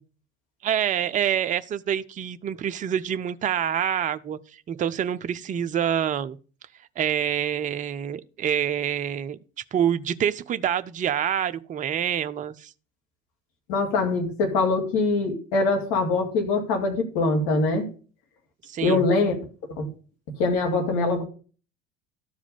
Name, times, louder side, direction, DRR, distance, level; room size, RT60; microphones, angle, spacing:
voice 1, 0.6-4.4 4.7-6.4 7.0-9.4 9.7-12.7 18.7-19.1, right 9 dB, 20° right, 0.5 m, -26 dB
voice 2, 13.7-17.9 18.8-19.4 19.8-19.9 20.4-21.2, left 3 dB, 55° left, 2.4 m, -23 dB
12.5 x 4.9 x 5.3 m
figure-of-eight pair, 65°, 39 cm